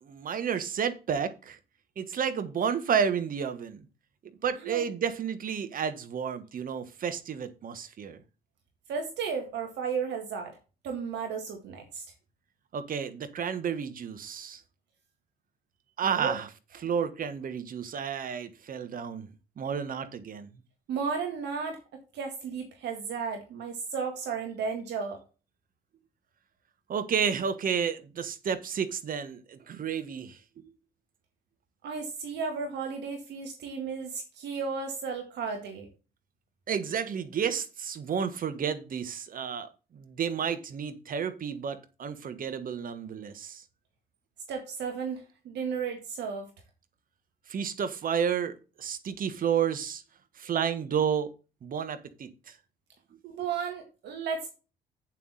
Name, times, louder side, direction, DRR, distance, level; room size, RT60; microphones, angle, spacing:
voice 1, 0.0-1.6 2.0-3.8 4.4-8.2 12.7-14.6 16.0-16.5 16.8-19.3 19.6-20.5 26.9-30.4 36.7-43.6 47.5-50.0 50.4-51.3 51.6-52.5, right 7 dB, 45° right, 10 dB, 1.4 m, -31 dB
voice 2, 8.9-10.6 10.8-12.1 16.1-16.3 20.9-21.8 22.1-25.2 31.8-35.9 44.5-46.5 53.2-54.5, right 5 dB, 60° right, 4 dB, 1.9 m, -34 dB
8.3 x 7.5 x 4.1 m, 0.32 s
hypercardioid pair, 50°, 20 cm